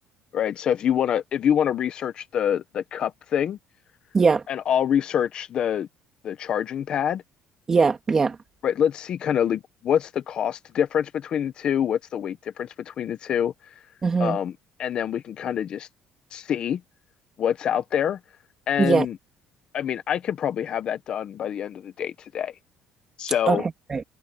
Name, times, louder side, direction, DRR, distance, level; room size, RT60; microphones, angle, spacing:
voice 1, 0.3-3.6 4.5-5.9 6.2-7.2 8.6-13.7 14.2-14.5 14.8-15.9 16.3-16.8 17.4-18.2 18.7-19.2 19.7-22.5 23.2-23.6, left 9 dB, 50° left, 1.3 m, -26 dB
voice 2, 7.7-8.4 14.0-14.4 18.8-19.0 23.5-24.0, right 4 dB, 25° right, 2.9 m, -21 dB
cardioid pair, 125°, 2 cm